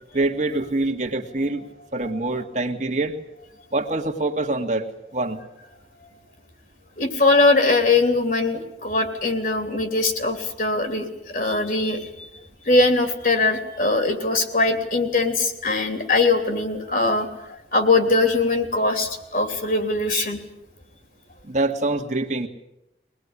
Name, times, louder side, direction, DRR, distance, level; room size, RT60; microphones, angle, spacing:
voice 1, 0.1-1.6 1.9-3.2 3.7-4.9 5.1-5.4 21.5-22.5, right 2 dB, 40° right, 3 dB, 1.9 m, -25 dB
voice 2, 7.0-12.3 12.6-20.4, left 3 dB, 50° left, 6 dB, 3.1 m, -21 dB
23.0 x 20.0 x 9.8 m, 0.88 s
head